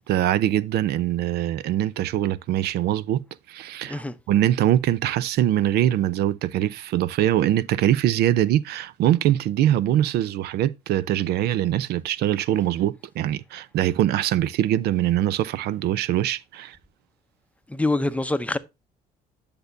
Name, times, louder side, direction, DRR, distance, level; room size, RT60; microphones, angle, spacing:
voice 1, 0.0-3.2 3.5-16.8, right 12 dB, 70° right, 0.5 m, -23 dB
voice 2, 17.7-18.6, left 2 dB, 10° left, 0.6 m, -25 dB
10.5 x 6.6 x 2.6 m
cardioid pair, 110°, 17 cm